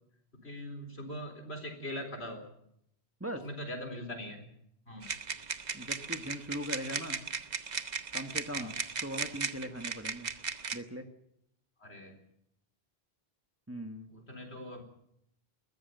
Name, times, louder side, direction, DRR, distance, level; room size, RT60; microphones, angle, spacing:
voice 1, 0.4-2.5 3.4-4.4 4.9-5.1 8.6-8.7 11.8-12.1 14.1-14.8, left 1 dB, 80° left, 4 dB, 4.4 m, -41 dB
sound 1, 5.0-10.8, right 5 dB, 45° right, 1.0 m, -37 dB
voice 2, 5.7-7.2 8.1-10.3 10.7-11.1 13.7-14.1, equal, 15° right, 5 dB, 1.6 m, -40 dB
21.0 x 14.0 x 9.2 m, 0.75 s
omnidirectional pair, 1.1 m